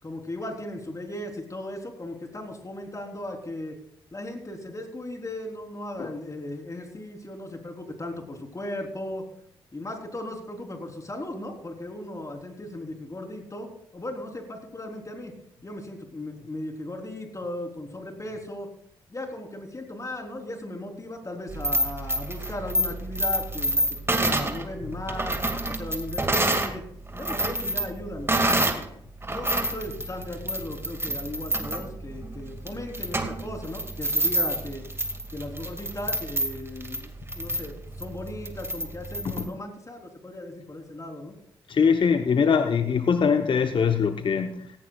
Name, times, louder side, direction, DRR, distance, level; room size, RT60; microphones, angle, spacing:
voice 1, 0.0-3.8 4.1-9.3 9.7-15.3 15.6-18.7 19.1-25.4 25.7-26.8 27.1-28.9 29.3-34.8 35.3-41.3, left 1 dB, 30° left, 3 dB, 3.8 m, -37 dB
sound 1, 21.5-26.7 27.1-28.9 29.2-39.5, right 1 dB, 20° right, 2.2 m, -28 dB
voice 2, 41.7-44.7, left 6 dB, 45° left, 8 dB, 1.0 m, -22 dB
17.0 x 16.5 x 2.4 m, 0.70 s
hypercardioid pair, 45°, 11 cm